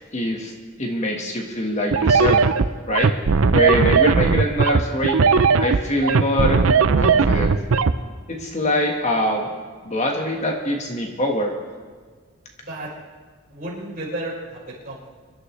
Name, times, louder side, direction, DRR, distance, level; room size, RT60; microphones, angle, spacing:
voice 1, 0.1-0.5 0.8-2.4 2.9-3.1 3.5-5.2 5.6-6.6 7.0-7.5 8.3-9.4 9.8-11.5, left 1 dB, 35° left, 1 dB, 1.5 m, -23 dB
sound 1, 1.9-7.9, right 5 dB, 85° right, 0.6 m, -17 dB
voice 2, 13.5-15.1, right 1 dB, 45° right, -6 dB, 5.0 m, -32 dB
25.0 x 12.0 x 3.3 m, 1.5 s
head